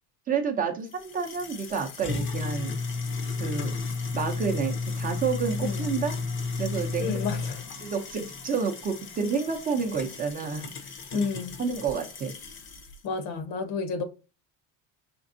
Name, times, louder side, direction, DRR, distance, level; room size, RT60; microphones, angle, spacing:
voice 1, 0.3-2.7 3.4-3.8 4.1-6.1 6.6-7.2 7.8-10.7 11.1-11.2 11.6-12.3, right 6 dB, 25° right, 0.5 m, -29 dB
sound 1, 0.9-12.9, left 4 dB, 35° left, 0.6 m, -34 dB
voice 2, 5.6-5.9 7.0-7.6 11.1-11.6 13.0-14.0, left 5 dB, 70° left, 0.9 m, -31 dB
5.1 x 3.3 x 2.6 m
cardioid pair, 175°, 36 cm